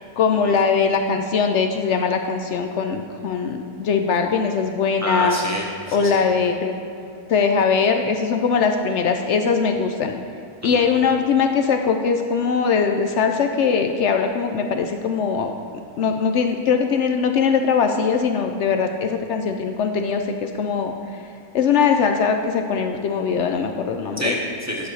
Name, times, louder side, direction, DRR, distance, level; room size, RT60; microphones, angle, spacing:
voice 1, 0.2-5.4 5.9-6.7 7.3-10.2 10.6-15.5 16.0-20.9 21.5-24.3, left 6 dB, 70° left, 5 dB, 0.7 m, -21 dB
voice 2, 5.0-6.2 10.6-10.9 24.2-24.9, equal, 15° right, -2 dB, 0.7 m, -27 dB
10.5 x 4.1 x 6.4 m, 2.5 s
omnidirectional pair, 1.6 m